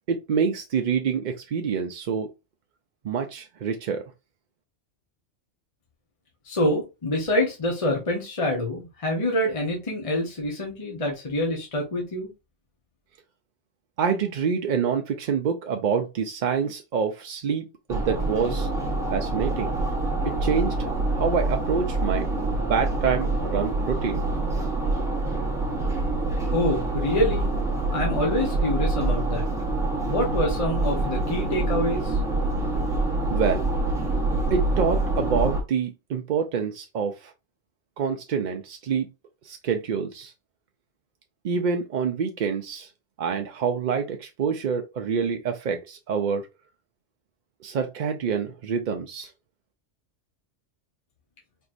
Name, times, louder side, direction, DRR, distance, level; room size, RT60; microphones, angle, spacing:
voice 1, 0.1-2.3 3.0-4.0 14.0-18.7 19.1-19.8 20.2-20.8 21.1-22.3 22.6-24.3 33.3-33.7 34.5-37.3 38.0-39.1 39.4-40.3 41.4-42.9 43.2-46.5 47.6-49.3, right 6 dB, 60° right, 0.5 m, -26 dB
voice 2, 6.4-12.3 26.5-27.5 27.9-29.5 30.0-32.2, left 1 dB, 30° left, 1.0 m, -26 dB
sound 1, 17.9-35.6, right 2 dB, 5° right, 0.9 m, -26 dB
4.4 x 3.0 x 2.5 m
omnidirectional pair, 1.2 m